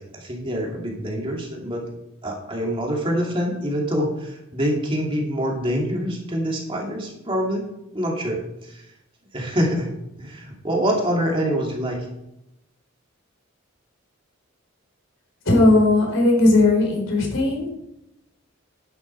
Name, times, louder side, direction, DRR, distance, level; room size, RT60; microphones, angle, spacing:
voice 1, 0.1-1.8 2.2-7.6 7.9-8.8 9.3-9.9 10.2-12.1, equal, 25° right, -1 dB, 2.6 m, -25 dB
voice 2, 15.4-17.7, left 2 dB, 70° left, 0 dB, 4.3 m, -17 dB
11.0 x 10.5 x 4.7 m, 0.85 s
head